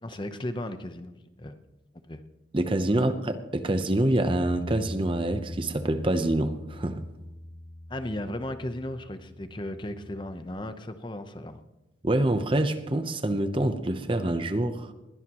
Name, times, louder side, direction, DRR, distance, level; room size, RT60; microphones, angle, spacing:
voice 1, 0.0-1.6 2.1-2.2 2.9-3.1 7.9-11.6, left 1 dB, 25° left, 0.8 m, -35 dB
voice 2, 2.5-7.1 12.0-14.9, right 1 dB, 25° right, 0.8 m, -26 dB
Bass guitar, 4.2-10.5, left 1 dB, 45° left, 3.7 m, -42 dB
21.0 x 17.0 x 3.0 m
head